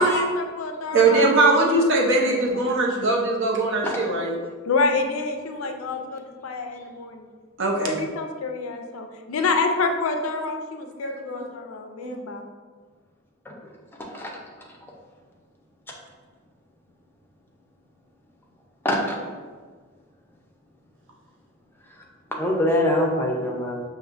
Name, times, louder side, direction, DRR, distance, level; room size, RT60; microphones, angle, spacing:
voice 1, 0.0-1.3 3.0-3.1 3.7-3.8 4.7-7.3 7.7-12.5, left 4 dB, 90° left, 5 dB, 0.4 m, -28 dB
voice 2, 0.9-4.3 5.5-5.6 6.5-6.6 7.6-8.0 9.4-9.5 11.0-11.5 12.0-12.2, right 2 dB, 60° right, -1 dB, 0.7 m, -21 dB
voice 3, 18.8-19.2 22.3-23.8, left 1 dB, 10° left, -1 dB, 0.5 m, -24 dB
5.8 x 2.6 x 2.5 m, 1.5 s
head